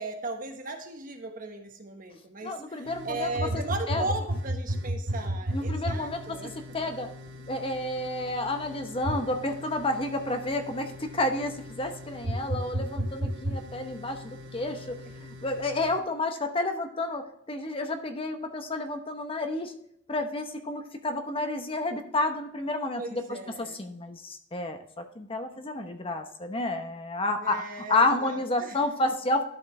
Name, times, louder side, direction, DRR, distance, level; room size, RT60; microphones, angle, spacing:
voice 1, 0.0-6.5 22.9-23.8 27.4-28.8, right 2 dB, 45° right, 5 dB, 1.2 m, -37 dB
voice 2, 2.4-3.5 3.9-4.0 5.5-6.2 6.7-7.1 7.5-19.7 20.1-23.2 23.6-24.8 25.2-27.6 27.9-29.4, left 2 dB, 30° left, 6 dB, 0.9 m, -30 dB
sound 1, 2.8-16.0, equal, 80° right, 1.2 m, -35 dB
11.5 x 5.7 x 3.3 m, 0.71 s
head